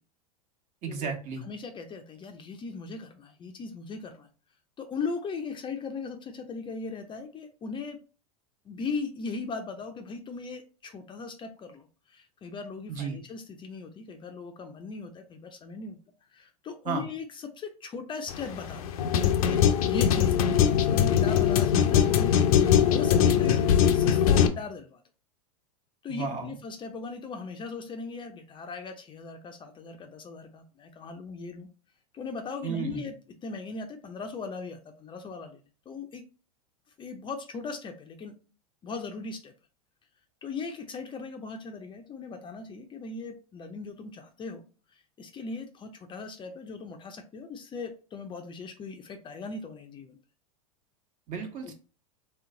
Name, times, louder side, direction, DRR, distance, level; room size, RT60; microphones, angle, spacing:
voice 1, 0.8-1.4 12.9-13.2 16.8-17.1 26.1-26.5 32.6-33.1 51.3-51.7, right 6 dB, 40° right, 4 dB, 1.2 m, -33 dB
voice 2, 1.4-4.3 4.8-8.0 8.7-16.0 16.3-18.9 19.5-23.6 23.9-25.0 26.0-31.7 32.1-33.2 33.4-35.6 35.9-36.2 37.0-38.3 38.8-39.5 40.4-44.6 44.9-50.2 51.6-51.7, left 4 dB, 25° left, 6 dB, 0.5 m, -38 dB
sound 1, 18.3-24.5, left 9 dB, 65° left, 0.6 m, -22 dB
3.4 x 3.0 x 3.7 m, 0.35 s
hypercardioid pair, 100°, 20 cm